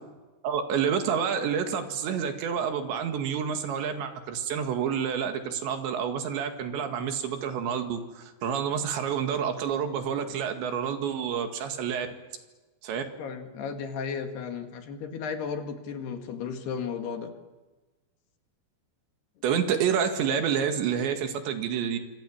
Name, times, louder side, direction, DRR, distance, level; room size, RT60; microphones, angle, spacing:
voice 1, 0.4-12.1 12.8-13.0 19.4-22.0, right 7 dB, 80° right, 6 dB, 4.3 m, -28 dB
voice 2, 13.2-17.3, left 6 dB, 65° left, 5 dB, 3.8 m, -34 dB
27.0 x 26.0 x 7.3 m, 1.2 s
omnidirectional pair, 5.1 m